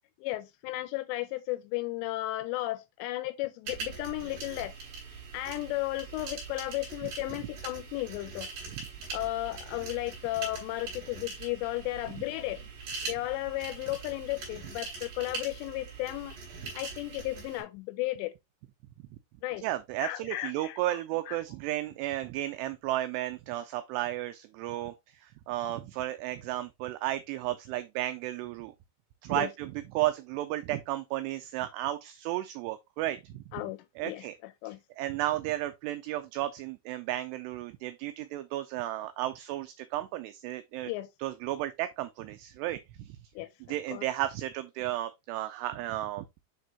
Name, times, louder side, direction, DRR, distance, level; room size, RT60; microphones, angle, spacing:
voice 1, 0.2-4.8 5.3-8.5 9.1-12.7 13.0-16.4 16.7-18.4 19.4-19.7 20.0-21.0 21.3-21.4 29.3-29.5 33.5-34.8 40.8-41.1 43.4-43.5 43.9-44.1, left 17 dB, 85° left, 2.6 m, -34 dB
sound 1, 3.7-17.6, right 4 dB, 60° right, 5.3 m, -42 dB
voice 2, 19.6-28.7 29.2-33.4 34.0-34.3 35.0-40.9 41.2-43.2 43.7-46.5, right 14 dB, 85° right, 2.4 m, -33 dB
10.0 x 3.4 x 2.8 m
omnidirectional pair, 5.3 m